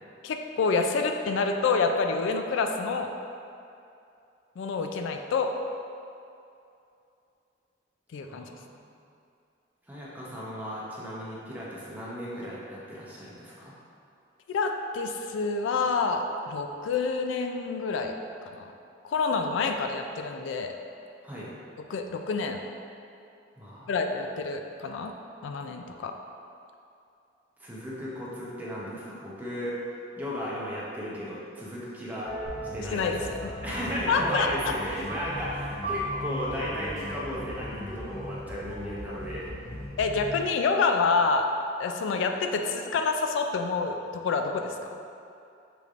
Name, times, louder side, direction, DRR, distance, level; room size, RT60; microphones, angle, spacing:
voice 1, 0.2-3.1 4.6-5.5 8.1-8.5 14.5-18.1 18.5-18.7 19.0-20.7 21.9-22.6 23.9-25.1 25.4-26.2 32.9-33.5 34.1-34.5 40.0-41.5 41.8-44.7, left 4 dB, 80° left, 5 dB, 0.3 m, -27 dB
voice 2, 8.3-8.9 9.9-13.7 21.2-21.5 23.6-23.9 27.6-29.8 30.2-32.4 32.7-33.2 33.6-39.5, equal, 10° right, -7 dB, 0.7 m, -35 dB
sound 1, 32.2-39.8, equal, 20° left, 0.9 m, -40 dB
sound 2, 32.5-40.5, left 1 dB, 55° left, 1.0 m, -39 dB
6.7 x 3.2 x 2.5 m, 2.6 s
head